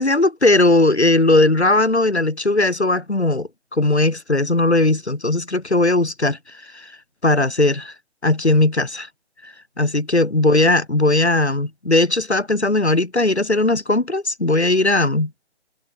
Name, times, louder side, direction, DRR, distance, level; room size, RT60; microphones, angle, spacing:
voice 1, 0.0-6.4 6.7-6.9 7.2-7.9 8.2-9.1 9.4-15.3, left 2 dB, 90° left, 6.8 m, -18 dB
figure-of-eight pair, 145°, 32 cm